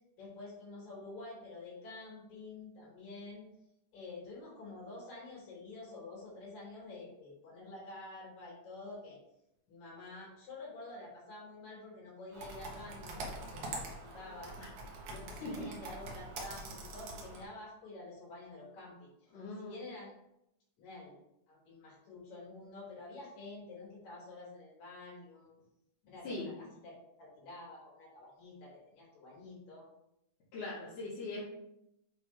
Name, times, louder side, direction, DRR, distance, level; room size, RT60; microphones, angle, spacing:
voice 1, 0.2-3.5 3.9-9.2 9.7-14.6 15.1-19.3 19.6-20.1 20.8-21.1 21.5-25.5 26.1-26.9 27.2-29.9, left 2 dB, 60° left, -5 dB, 4.4 m, -49 dB
Computer keyboard, 12.3-17.4, right 2 dB, 70° right, 2.5 m, -44 dB
voice 2, 19.3-19.8 26.2-26.5 30.5-31.4, left 2 dB, 80° left, -10 dB, 3.4 m, -40 dB
8.2 x 3.6 x 4.6 m, 0.80 s
omnidirectional pair, 3.6 m